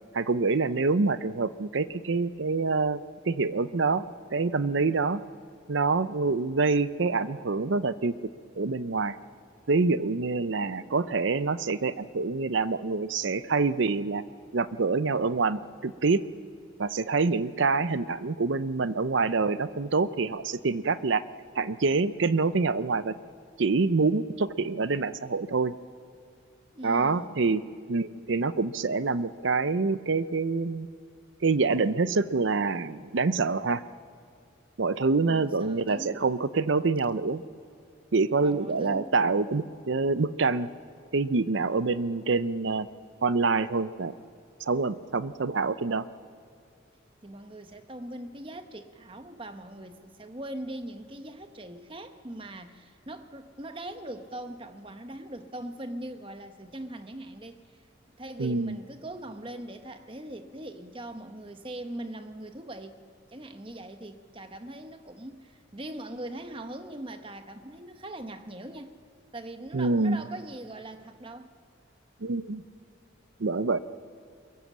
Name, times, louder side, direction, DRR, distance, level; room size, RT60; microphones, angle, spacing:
voice 1, 0.1-3.0 3.3-4.0 4.3-5.2 5.7-8.1 8.6-9.2 9.7-14.2 14.5-16.2 16.8-21.2 21.5-23.1 23.6-25.7 26.8-27.6 27.9-30.9 31.4-33.8 34.8-37.4 38.1-40.7 41.1-42.9 43.2-44.1 44.7-46.0 58.4-58.8 69.7-70.2 72.2-72.6 73.4-73.8, right 4 dB, 70° right, 14 dB, 0.6 m, -26 dB
voice 2, 26.7-27.5 35.2-36.2 38.4-39.7 47.2-57.6 58.2-62.9 63.3-69.0 69.3-71.5, right 1 dB, 25° right, 7 dB, 1.0 m, -41 dB
23.5 x 22.0 x 7.5 m, 2.2 s
head